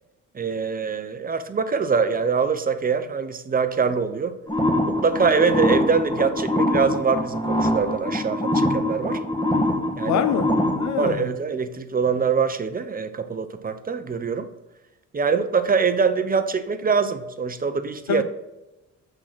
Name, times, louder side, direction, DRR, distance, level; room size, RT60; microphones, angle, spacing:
voice 1, 0.3-4.3 4.9-9.2 10.0-10.2 11.0-14.5 15.1-18.2, right 5 dB, 30° right, 0.7 m, -23 dB
sound 1, 4.5-11.1, left 1 dB, 15° left, 1.4 m, -23 dB
voice 2, 10.1-11.3 18.1-18.2, left 8 dB, 65° left, 0.8 m, -25 dB
8.3 x 3.9 x 6.0 m
cardioid pair, 90°, 30 cm